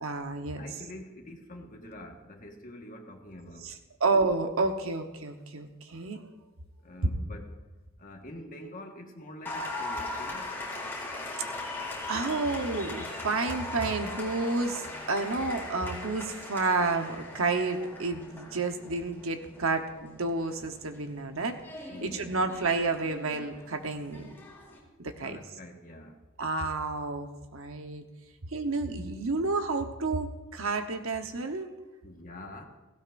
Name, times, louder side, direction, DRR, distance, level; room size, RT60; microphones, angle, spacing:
voice 1, 0.0-0.6 3.6-3.7 4.0-6.2 12.1-21.6 22.0-24.3 25.0-25.4 26.4-27.3 27.5-28.0 28.5-31.7, right 3 dB, 70° right, 6 dB, 1.0 m, -30 dB
voice 2, 0.6-3.7 6.8-7.6 8.0-10.5 21.9-22.4 25.2-26.1 32.0-32.6, left 1 dB, 40° left, 2 dB, 1.5 m, -46 dB
Applause, 9.4-24.8, left 2 dB, 10° left, 3.4 m, -40 dB
16.5 x 16.5 x 2.6 m, 1.1 s
head